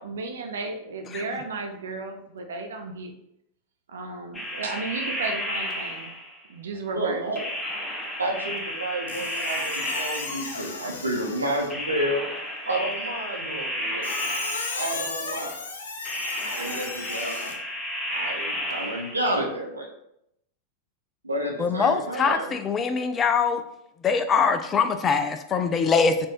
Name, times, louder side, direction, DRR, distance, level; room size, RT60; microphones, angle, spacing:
voice 1, 0.0-3.1 3.9-6.1 6.5-7.5, right 3 dB, 65° right, 5 dB, 0.4 m, -34 dB
sound 1, 4.3-6.4 7.4-10.8 11.7-15.0 16.0-19.2, equal, 10° left, 0.8 m, -32 dB
voice 2, 6.9-7.4 8.2-12.2 12.6-14.1 14.7-15.6 16.5-17.4 18.1-19.9 21.2-22.5, right 1 dB, 80° right, -1 dB, 0.8 m, -30 dB
Squeak, 9.1-11.8 14.0-17.5, left 3 dB, 65° left, 0.6 m, -34 dB
voice 3, 21.6-23.6 24.0-26.3, left 5 dB, 25° left, 8 dB, 0.3 m, -23 dB
4.4 x 2.6 x 3.0 m, 0.77 s
figure-of-eight pair, 90°, 0 cm